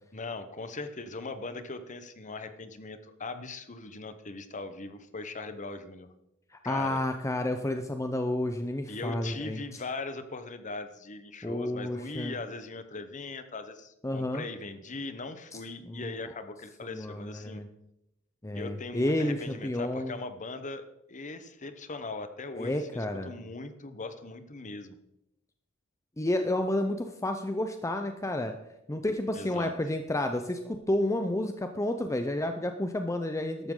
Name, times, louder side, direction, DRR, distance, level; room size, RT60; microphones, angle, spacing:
voice 1, 0.1-6.1 6.6-7.0 8.9-17.6 18.5-24.9 29.3-29.7, left 3 dB, 35° left, 10 dB, 1.0 m, -40 dB
voice 2, 6.7-9.6 11.4-12.3 14.0-14.5 15.9-16.1 16.8-17.7 18.4-20.1 22.5-23.3 26.2-28.6 28.9-33.7, left 1 dB, 15° left, 6 dB, 0.6 m, -30 dB
13.5 x 12.0 x 3.8 m, 0.84 s
head